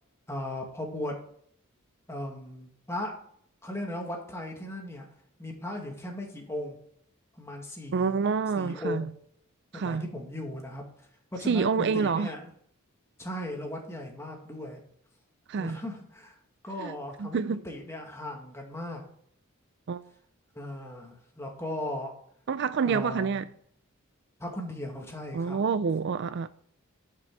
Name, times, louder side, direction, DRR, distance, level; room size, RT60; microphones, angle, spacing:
voice 1, 0.3-1.2 2.1-3.2 3.6-5.1 5.4-6.8 7.4-8.2 8.5-9.1 9.7-10.8 11.3-12.4 13.2-14.8 15.6-16.4 16.6-19.0 20.6-22.1 22.9-23.4 24.4-25.6, left 1 dB, 15° left, 1.9 m, -37 dB
voice 2, 7.9-9.1 9.7-10.1 11.4-12.3 15.5-15.8 16.8-17.6 19.9-20.1 22.5-23.5 25.3-26.5, right 5 dB, 55° right, 0.4 m, -28 dB
11.0 x 6.0 x 4.6 m
head